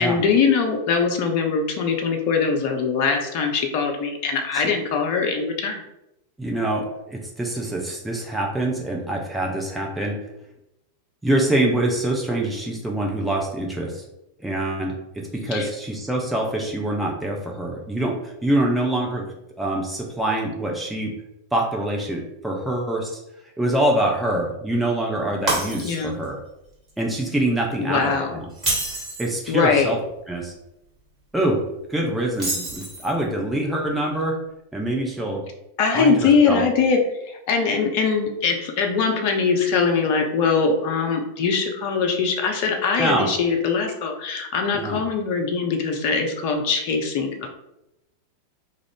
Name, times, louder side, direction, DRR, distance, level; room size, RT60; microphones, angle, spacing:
voice 1, 0.0-5.8 15.5-15.7 25.8-26.1 27.8-28.3 29.5-29.9 35.8-37.0 37.3-47.5, left 5 dB, 45° left, 3 dB, 0.5 m, -22 dB
voice 2, 6.4-10.2 11.2-14.0 14.4-19.2 19.6-21.1 21.5-23.1 23.6-26.4 27.0-28.5 29.2-30.0 30.3-30.5 31.3-31.6 31.9-34.4 34.7-35.4 35.9-36.6 43.0-43.3 44.7-45.0, right 1 dB, 5° right, -1 dB, 0.5 m, -25 dB
Shatter, 25.5-26.3 26.7-26.9 28.5-29.4 32.3-33.2, right 2 dB, 25° right, 1.4 m, -27 dB
2.4 x 2.4 x 3.3 m, 0.87 s
figure-of-eight pair, 90°, 0 cm